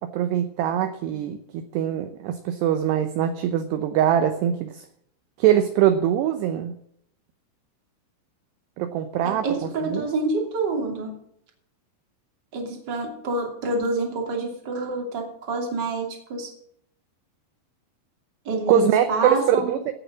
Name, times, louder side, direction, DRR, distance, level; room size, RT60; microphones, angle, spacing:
voice 1, 0.1-4.9 5.4-6.7 8.8-10.1 18.7-19.9, right 10 dB, 80° right, 9 dB, 2.5 m, -23 dB
voice 2, 9.2-11.1 12.5-16.5 18.4-19.8, right 3 dB, 30° right, 2 dB, 2.4 m, -27 dB
16.0 x 7.9 x 6.1 m, 0.71 s
omnidirectional pair, 5.7 m